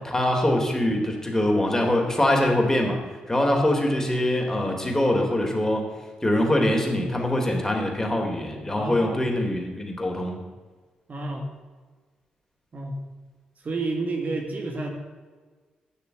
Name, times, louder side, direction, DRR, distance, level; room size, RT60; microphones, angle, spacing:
voice 1, 0.0-3.0 3.3-5.9 6.2-10.4, left 1 dB, 15° left, 1 dB, 3.3 m, -23 dB
voice 2, 8.7-9.2 11.1-11.5 12.7-13.0 13.6-14.9, right 2 dB, 45° right, 2 dB, 1.9 m, -30 dB
10.5 x 6.7 x 8.1 m, 1.4 s
hypercardioid pair, 40°, 4 cm